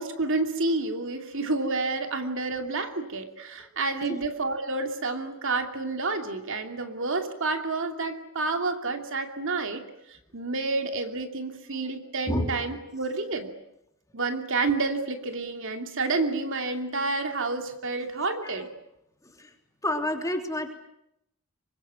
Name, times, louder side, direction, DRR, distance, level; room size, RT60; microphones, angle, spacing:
voice 1, 0.0-13.5 14.1-18.7, right 3 dB, 65° right, 5 dB, 2.7 m, -29 dB
voice 2, 19.8-20.8, left 1 dB, 15° left, 4 dB, 3.3 m, -29 dB
24.5 x 22.0 x 9.4 m, 0.80 s
head